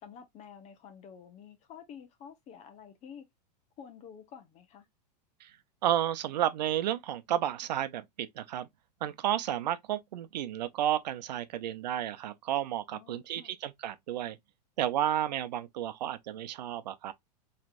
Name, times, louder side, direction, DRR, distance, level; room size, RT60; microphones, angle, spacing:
voice 1, 0.0-3.3 3.8-4.9 12.9-13.5, left 7 dB, 35° left, 1.0 m, -50 dB
voice 2, 5.8-8.7 9.0-14.4 14.8-17.1, right 11 dB, 80° right, 0.7 m, -32 dB
4.5 x 3.2 x 2.5 m
supercardioid pair, 130°, 21 cm